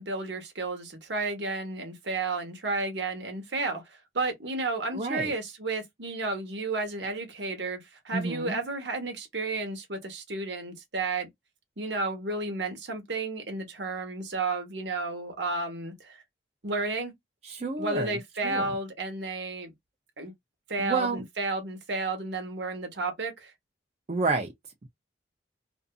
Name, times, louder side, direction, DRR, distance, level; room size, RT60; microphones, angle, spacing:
voice 1, 0.0-11.3 11.8-16.2 16.6-17.1 17.8-19.7 20.2-20.3 20.7-23.5, right 3 dB, 70° right, 1.0 m, -32 dB
voice 2, 4.9-5.3 8.1-8.6 17.4-18.2 18.4-18.7 20.8-21.2 24.1-24.5, right 3 dB, 35° right, 0.5 m, -29 dB
2.6 x 2.5 x 2.3 m
head